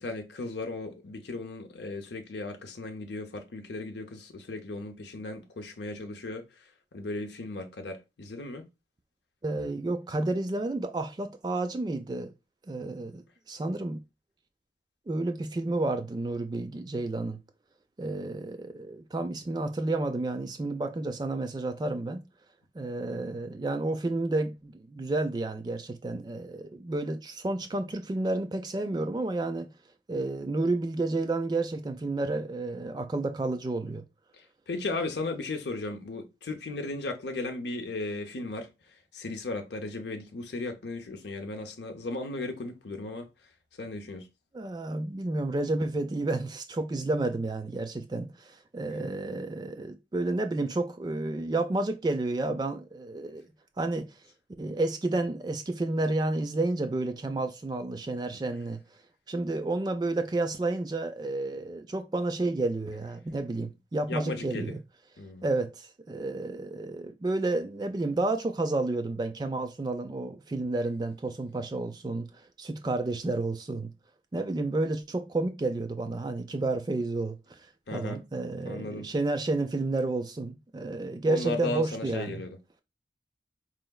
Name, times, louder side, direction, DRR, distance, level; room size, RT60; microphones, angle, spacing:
voice 1, 0.0-8.7 34.4-38.7 39.1-43.3 43.8-44.3 64.1-64.7 65.2-65.4 77.9-78.2 78.6-79.1 81.3-82.6, left 2 dB, 70° left, 0.6 m, -36 dB
voice 2, 9.4-12.3 12.7-14.0 15.1-17.4 18.0-22.2 22.7-29.7 30.1-34.0 44.5-53.5 53.8-54.2 54.6-58.8 59.3-64.8 65.4-73.9 74.3-77.7 77.9-82.4, right 2 dB, 25° right, 0.3 m, -31 dB
4.6 x 3.1 x 2.2 m
head